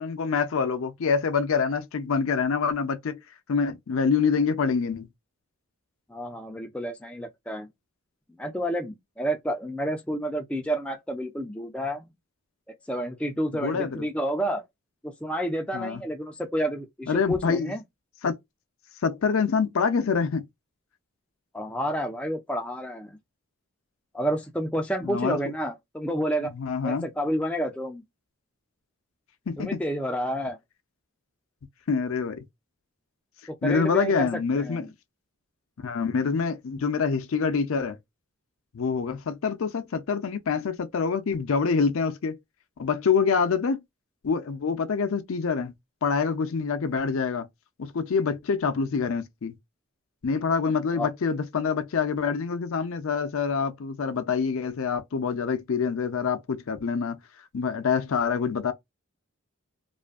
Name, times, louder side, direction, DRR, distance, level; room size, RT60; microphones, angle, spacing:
voice 1, 0.0-3.2 3.5-5.1 13.5-14.1 15.7-16.0 17.1-17.7 18.2-18.4 19.0-20.5 25.0-25.4 26.5-27.1 29.5-29.8 31.9-32.5 33.6-34.9 35.8-38.0 38.7-42.4 42.8-43.8 44.2-45.7 46.0-47.5 47.8-49.6 50.2-58.7, left 5 dB, 70° left, 0.5 m, -26 dB
voice 2, 6.1-7.7 8.4-12.1 12.9-14.6 15.0-17.8 21.5-23.2 24.1-26.5 26.8-28.0 29.6-30.6 33.5-34.3 34.6-34.9 50.9-51.1, equal, 5° left, 0.3 m, -30 dB
2.6 x 2.4 x 2.3 m
head